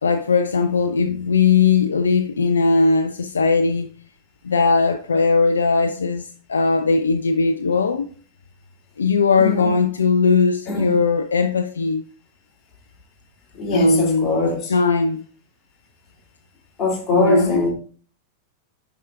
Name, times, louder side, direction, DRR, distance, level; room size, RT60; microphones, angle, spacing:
voice 1, 0.0-3.9 4.4-8.1 9.0-12.0 13.7-15.2 17.1-17.6, left 4 dB, 70° left, 0.4 m, -19 dB
voice 2, 9.4-9.7 10.7-10.9 13.5-14.7 16.8-17.7, left 3 dB, 30° left, 2.9 m, -22 dB
11.0 x 4.7 x 2.4 m
figure-of-eight pair, 90°, 0 cm